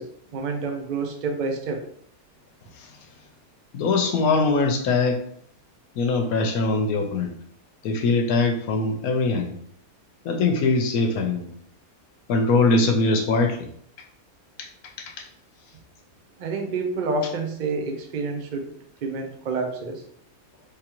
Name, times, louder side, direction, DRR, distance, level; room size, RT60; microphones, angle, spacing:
voice 1, 0.0-1.9 16.4-18.7 19.0-20.0, right 3 dB, 45° right, 3 dB, 0.6 m, -28 dB
voice 2, 3.7-5.2 6.0-7.3 7.8-9.5 10.3-11.5 12.3-13.6, left 3 dB, 80° left, 4 dB, 1.1 m, -22 dB
5.0 x 3.5 x 2.9 m, 0.63 s
omnidirectional pair, 1.5 m